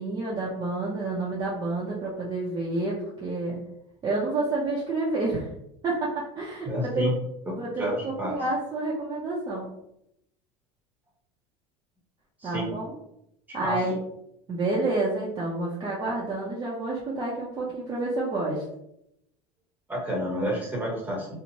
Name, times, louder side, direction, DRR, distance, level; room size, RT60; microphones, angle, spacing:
voice 1, 0.0-3.6 4.0-5.5 5.8-7.0 7.6-9.7 12.4-12.9 13.5-14.0 14.5-18.6, right 2 dB, 30° right, -5 dB, 0.6 m, -29 dB
voice 2, 6.6-7.1 7.7-8.4 12.4-12.7 13.6-13.8 19.9-21.3, equal, 10° right, -2 dB, 0.9 m, -29 dB
2.8 x 2.1 x 2.7 m, 0.80 s
supercardioid pair, 115°, 15 cm